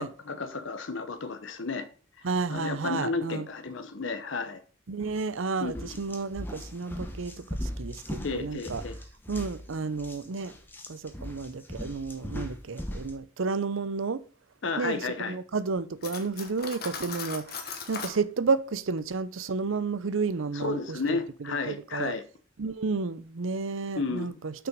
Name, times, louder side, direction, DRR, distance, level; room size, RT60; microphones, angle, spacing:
voice 1, 0.0-1.9 2.5-4.6 5.6-5.9 8.2-9.0 14.6-15.4 20.5-22.2 23.9-24.4, left 4 dB, 70° left, 0.8 m, -32 dB
voice 2, 2.2-3.5 4.9-8.8 9.3-10.5 10.9-14.2 14.8-22.1 22.6-24.5, right 4 dB, 80° right, 0.6 m, -31 dB
sound 1, 5.0-5.2 5.6-13.2, equal, 10° left, 0.8 m, -39 dB
Cutlery silverware, 16.0-18.2, left 5 dB, 50° left, 1.1 m, -38 dB
6.1 x 5.9 x 5.3 m
head